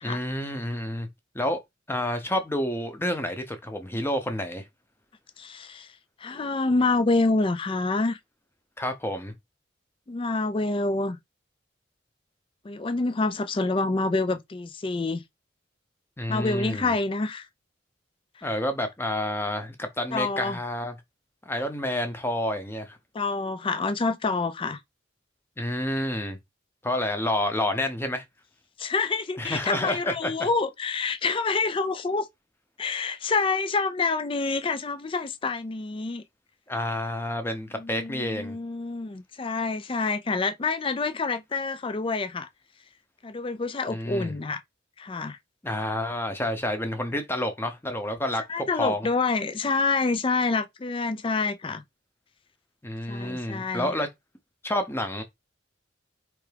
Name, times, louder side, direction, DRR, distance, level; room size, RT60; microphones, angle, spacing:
voice 1, 0.0-1.1 1.3-1.6 1.9-4.6 8.8-9.3 16.2-16.9 18.4-20.9 21.5-23.0 25.6-26.4 26.8-28.2 29.4-30.5 36.7-38.6 43.9-44.4 45.6-49.1 52.8-54.1 54.6-55.2, left 1 dB, 10° left, 0.8 m, -29 dB
voice 2, 5.4-5.9 6.2-8.2 10.1-11.2 12.6-15.2 16.3-17.4 20.1-20.6 23.1-24.8 28.8-32.3 32.8-36.2 37.8-42.5 43.2-44.6 45.0-45.4 48.5-51.8 53.1-53.9, left 3 dB, 25° left, 0.4 m, -27 dB
4.7 x 3.3 x 3.4 m
head